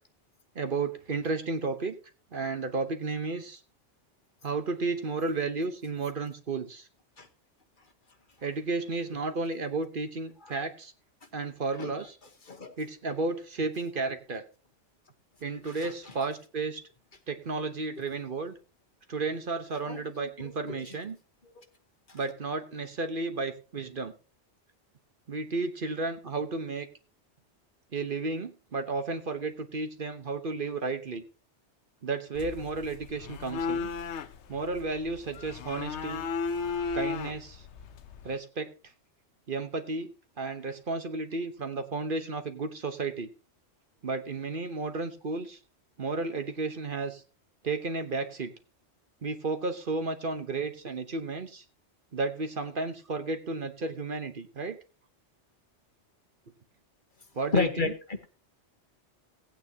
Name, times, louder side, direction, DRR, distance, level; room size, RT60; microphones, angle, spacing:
voice 1, 0.5-1.9 2.3-3.6 4.4-6.9 8.4-10.9 11.3-12.1 12.8-14.4 15.4-16.8 17.3-18.5 19.1-21.2 22.1-24.1 25.3-26.9 27.9-31.2 32.0-33.9 34.5-36.2 36.9-37.6 38.2-38.7 39.5-40.1 40.4-43.3 44.0-45.6 46.0-47.2 47.6-48.5 49.2-51.6 52.1-54.8 57.3-57.9, right 3 dB, 50° right, 8 dB, 1.1 m, -33 dB
voice 2, 15.7-16.1 19.9-20.9 21.6-21.7 57.5-58.3, left 3 dB, 45° left, 5 dB, 1.3 m, -32 dB
sound 1, 32.4-38.3, left 5 dB, 75° left, 1.0 m, -35 dB
17.0 x 8.9 x 2.8 m, 0.34 s
omnidirectional pair, 1.2 m